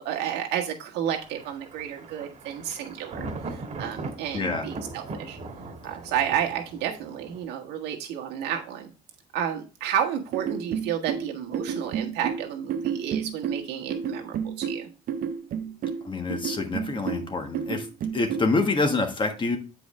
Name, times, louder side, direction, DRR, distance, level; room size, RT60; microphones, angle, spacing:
voice 1, 0.0-3.2 3.8-5.4 5.8-8.9 9.3-14.9, right 9 dB, 90° right, 1 dB, 1.5 m, -31 dB
Thunder, 1.0-7.4, right 3 dB, 40° right, 1.6 m, -39 dB
voice 2, 4.3-4.6 16.0-17.9 18.1-19.6, left 3 dB, 30° left, 5 dB, 1.3 m, -26 dB
sound 1, 10.3-18.6, right 7 dB, 60° right, 0.7 m, -31 dB
8.2 x 4.8 x 3.1 m, 0.33 s
cardioid pair, 110°, 17 cm